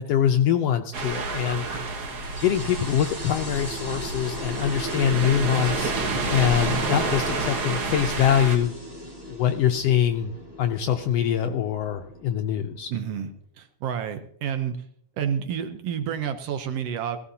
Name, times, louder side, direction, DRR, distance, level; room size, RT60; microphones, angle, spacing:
voice 1, 0.0-1.8 2.4-8.7 9.3-12.9, left 9 dB, 75° left, 6 dB, 1.5 m, -24 dB
sound 1, 0.9-8.6, right 3 dB, 55° right, 1.1 m, -29 dB
sound 2, 2.2-13.2, equal, 10° right, 1.2 m, -38 dB
voice 2, 12.9-13.3 13.6-14.8 15.2-17.2, right 8 dB, 70° right, 8 dB, 1.6 m, -29 dB
16.5 x 15.5 x 2.8 m, 0.63 s
omnidirectional pair, 3.3 m